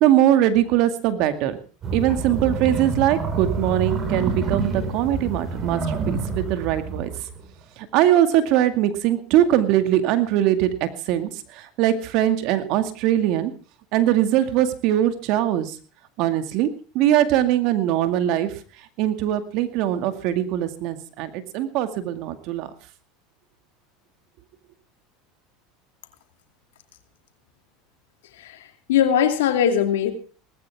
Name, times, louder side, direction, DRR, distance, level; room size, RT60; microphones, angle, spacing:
voice 1, 0.0-1.6 1.9-7.1 7.8-13.5 13.9-15.8 16.2-16.7 16.9-18.5 19.0-22.7, right 12 dB, 60° right, 9 dB, 2.2 m, -21 dB
sound 1, 1.8-7.5, right 4 dB, 35° right, 5.2 m, -27 dB
voice 2, 28.4-30.1, left 9 dB, 85° left, 6 dB, 2.6 m, -21 dB
19.0 x 14.5 x 3.6 m, 0.36 s
hypercardioid pair, 100°, 0 cm